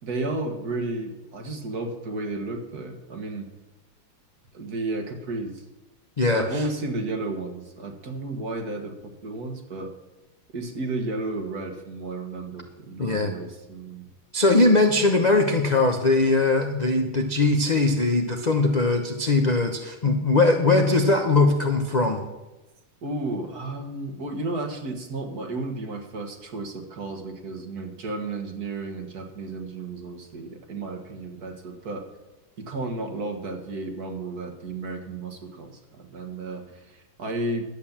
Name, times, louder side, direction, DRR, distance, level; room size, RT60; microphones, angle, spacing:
voice 1, 0.0-3.5 4.5-5.6 6.3-9.9 10.5-14.1 14.6-14.7 23.0-32.0 32.7-37.7, right 2 dB, 50° right, 4 dB, 1.9 m, -33 dB
voice 2, 6.2-6.6 13.0-13.3 14.3-22.2, left 2 dB, 55° left, 3 dB, 0.4 m, -21 dB
12.0 x 8.7 x 7.2 m, 1.1 s
omnidirectional pair, 2.3 m